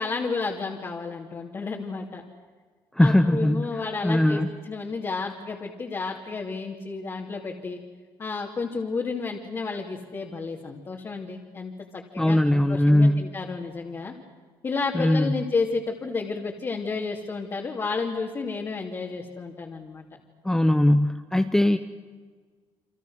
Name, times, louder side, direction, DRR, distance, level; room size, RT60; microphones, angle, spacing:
voice 1, 0.0-2.2 3.0-4.4 4.7-7.8 8.2-14.1 14.6-20.0, left 4 dB, 30° left, -2 dB, 2.8 m, -31 dB
voice 2, 2.9-3.7 4.0-4.5 12.2-13.2 14.9-15.4 20.4-21.8, left 1 dB, 5° left, 7 dB, 1.0 m, -20 dB
30.0 x 26.0 x 6.4 m, 1.5 s
cardioid pair, 130°, 9 cm